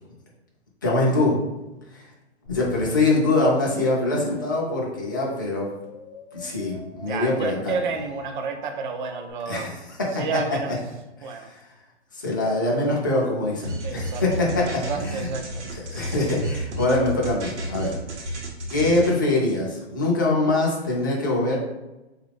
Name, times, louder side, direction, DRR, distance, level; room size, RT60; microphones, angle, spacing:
voice 1, 0.8-1.3 1.9-2.1 2.5-5.7 6.3-7.7 9.5-9.7 10.1-10.2 11.2-11.6 12.1-15.3 15.7-18.2 18.7-21.5, left 2 dB, 20° left, -4 dB, 0.4 m, -23 dB
sound 1, 2.5-9.3, left 3 dB, 70° left, 0.7 m, -43 dB
voice 2, 7.0-9.7 10.1-10.8 11.2-11.5 13.8-14.5 14.8-15.7, right 5 dB, 45° right, 5 dB, 0.4 m, -30 dB
sound 2, 13.6-19.1, equal, 90° right, 0.9 m, -32 dB
4.1 x 2.4 x 3.2 m, 1.0 s
hypercardioid pair, 165°, 34 cm